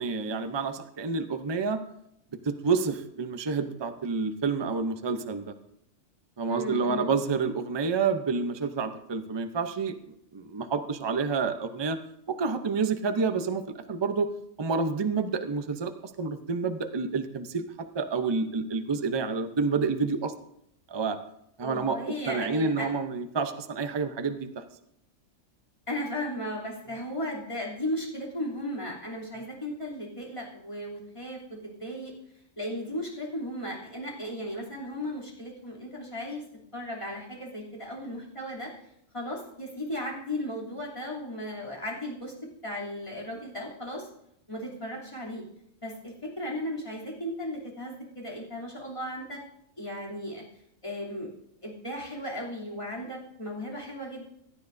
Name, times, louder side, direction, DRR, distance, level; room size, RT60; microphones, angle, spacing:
voice 1, 0.0-1.8 2.4-5.5 6.4-9.9 10.3-12.0 12.3-14.3 14.6-15.9 16.2-17.6 17.9-20.3 20.9-21.2 21.6-22.0 22.3-24.6, right 4 dB, 25° right, 8 dB, 0.6 m, -28 dB
voice 2, 6.5-7.1 21.6-22.9 25.9-32.1 32.6-36.4 36.7-38.7 39.1-42.3 42.6-44.1 44.5-45.4 45.8-49.4 49.8-50.4 50.8-51.3 51.6-54.2, left 1 dB, 25° left, -5 dB, 3.2 m, -36 dB
16.5 x 12.0 x 2.7 m, 0.76 s
omnidirectional pair, 1.3 m